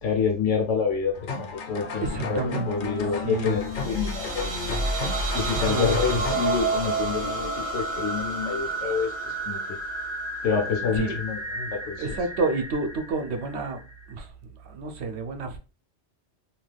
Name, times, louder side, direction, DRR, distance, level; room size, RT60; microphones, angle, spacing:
voice 1, 0.0-4.6 5.3-9.8 10.4-12.0, left 6 dB, 85° left, 1.1 m, -28 dB
sound 1, 1.1-6.6, left 4 dB, 55° left, 0.6 m, -34 dB
voice 2, 2.0-3.6 5.5-6.2 10.8-11.2 12.0-14.3 14.6-15.6, right 3 dB, 70° right, 0.8 m, -30 dB
sound 2, 3.5-14.1, right 2 dB, 35° right, 0.5 m, -30 dB
2.7 x 2.2 x 3.3 m
omnidirectional pair, 1.2 m